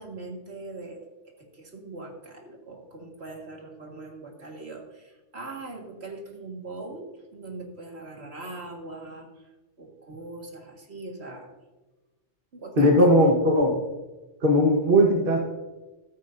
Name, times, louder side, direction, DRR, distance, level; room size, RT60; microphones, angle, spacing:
voice 1, 0.0-9.3 9.8-11.5 12.5-13.1, right 2 dB, 70° right, 1 dB, 2.0 m, -41 dB
voice 2, 12.8-13.8 14.4-15.4, equal, 50° right, 0 dB, 1.6 m, -19 dB
14.5 x 13.0 x 2.6 m, 1.1 s
omnidirectional pair, 1.1 m